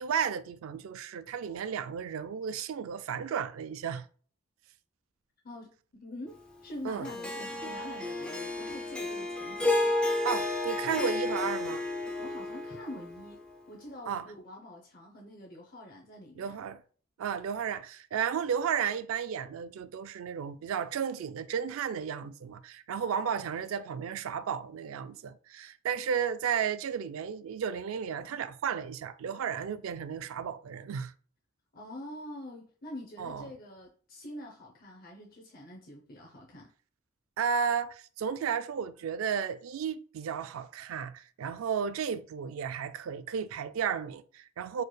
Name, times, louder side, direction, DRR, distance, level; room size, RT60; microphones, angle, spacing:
voice 1, 0.0-4.1 6.8-7.1 10.2-11.8 14.1-14.3 16.4-16.8 17.2-31.1 33.2-33.5 37.4-44.8, right 7 dB, 90° right, 0.3 m, -33 dB
voice 2, 6.0-9.9 12.2-13.4 13.7-16.5 31.7-36.7, left 1 dB, 45° left, 0.6 m, -45 dB
Harp, 7.0-13.4, left 2 dB, 5° left, 0.4 m, -32 dB
4.4 x 3.1 x 2.2 m
head